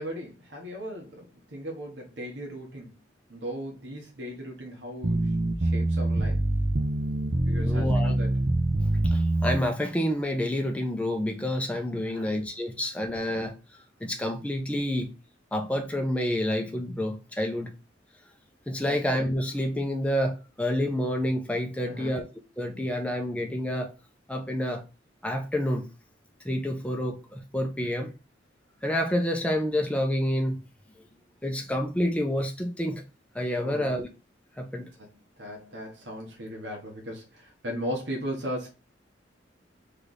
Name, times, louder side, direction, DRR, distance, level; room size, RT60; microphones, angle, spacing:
voice 1, 0.0-2.9 3.3-6.4 7.4-8.4 12.0-12.3 18.8-19.0 21.8-22.2 33.6-34.0 35.0-38.7, equal, 65° right, 1.2 m, -37 dB
sound 1, 5.0-9.6, right 2 dB, 45° right, 0.6 m, -25 dB
voice 2, 7.6-8.1 9.1-13.5 14.0-15.1 15.5-17.7 18.7-22.3 22.6-23.9 24.3-24.8 25.2-25.9 26.4-28.1 28.8-30.6 31.4-33.0 33.3-34.1 34.6-34.9, left 1 dB, 5° left, 0.6 m, -28 dB
3.3 x 3.3 x 4.0 m
head